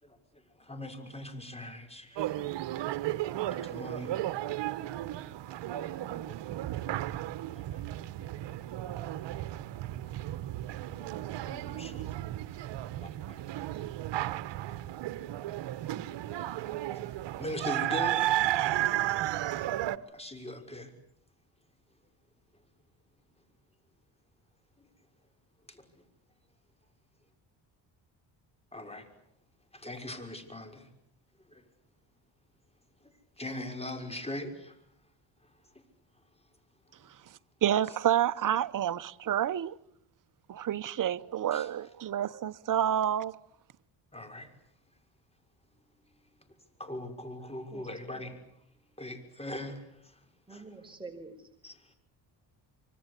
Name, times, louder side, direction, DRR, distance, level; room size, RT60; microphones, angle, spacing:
voice 1, 0.0-2.2 3.5-4.1 5.7-6.6 7.5-7.8 8.2-8.3 10.9-12.1 13.0-13.9 15.1-15.4 15.7-15.8 17.4-18.2 20.1-20.9 24.8-24.9 25.7-26.0 28.7-29.1 29.7-30.9 31.5-31.6 33.0-34.8 41.5-41.7 44.1-44.5 46.8-48.4 49.0-50.2 50.5-50.6 51.6-51.9, left 1 dB, 15° left, 6.0 m, -42 dB
sound 1, 2.2-20.0, right 14 dB, 70° right, 1.3 m, -34 dB
voice 2, 37.6-39.8 40.5-43.3, right 10 dB, 45° right, 1.0 m, -29 dB
voice 3, 50.5-51.5, right 3 dB, 10° right, 4.9 m, -46 dB
26.5 x 24.5 x 8.4 m
cardioid pair, 80°, 45 cm